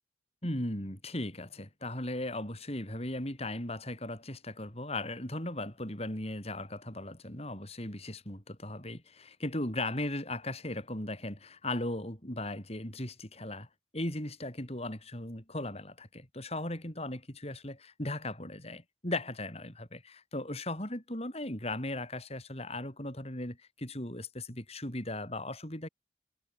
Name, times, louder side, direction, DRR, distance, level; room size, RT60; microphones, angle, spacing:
voice 1, 0.4-13.7 13.9-25.9, left 1 dB, 35° left, 7.5 m, -37 dB
head